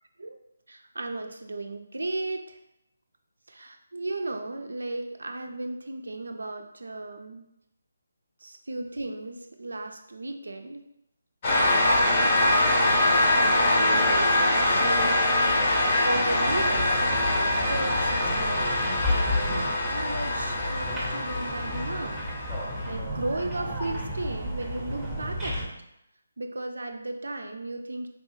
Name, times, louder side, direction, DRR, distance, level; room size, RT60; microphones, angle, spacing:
voice 1, 0.7-2.6 3.5-7.5 8.4-10.8 11.8-15.3 16.0-22.2 22.9-25.7 26.4-28.1, right 2 dB, 80° right, 5 dB, 0.3 m, -35 dB
sound 1, 11.4-22.9, left 1 dB, 35° left, 0.7 m, -24 dB
sound 2, 16.4-25.7, left 1 dB, 5° right, 0.7 m, -32 dB
3.8 x 2.2 x 3.0 m, 0.81 s
figure-of-eight pair, 155°, 0 cm